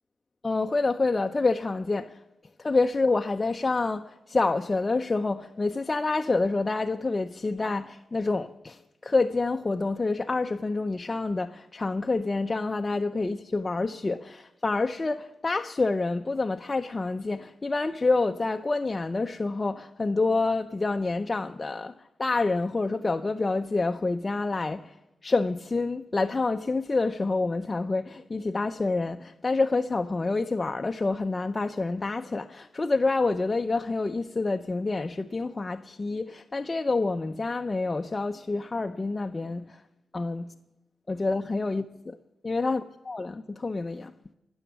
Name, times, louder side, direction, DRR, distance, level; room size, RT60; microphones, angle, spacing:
voice 1, 0.4-2.2 2.6-25.0 25.2-39.8 40.1-40.4 41.1-42.2 42.4-42.8 43.1-44.1, left 3 dB, 30° left, 0.5 m, -27 dB
16.0 x 7.1 x 9.7 m
cardioid pair, 85°, 0 cm